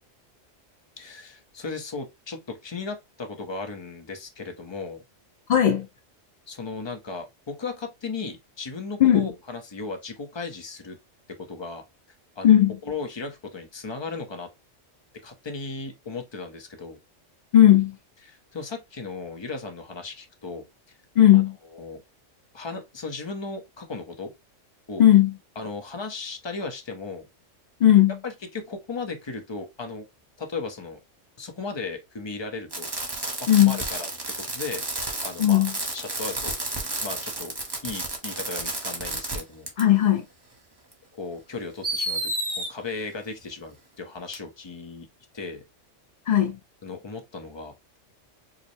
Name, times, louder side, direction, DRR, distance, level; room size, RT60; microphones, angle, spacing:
voice 1, 1.0-5.0 6.5-11.0 11.4-11.8 12.4-12.5 12.8-14.5 15.2-17.0 18.3-20.7 21.3-21.4 21.7-22.0 22.5-24.3 24.9-25.0 25.6-27.3 28.2-30.1 30.4-31.0 31.4-32.9 33.4-34.1 34.4-35.6 35.9-36.6 37.0-37.6 37.8-39.7 41.1-45.1 45.3-45.6 46.8-48.0, left 4 dB, 30° left, 0.5 m, -36 dB
voice 2, 5.5-5.9 9.0-9.3 12.4-12.8 17.5-18.0 21.2-21.6 25.0-25.3 27.8-28.2 33.5-33.8 35.4-35.7 39.8-40.2 46.3-46.6, left 11 dB, 80° left, 0.4 m, -17 dB
Fireworks, 32.7-39.4 39.7-39.8 40.9-41.0 41.8-42.7 44.3-44.4, right 2 dB, 20° right, 0.8 m, -31 dB
4.8 x 2.0 x 3.1 m
omnidirectional pair, 1.3 m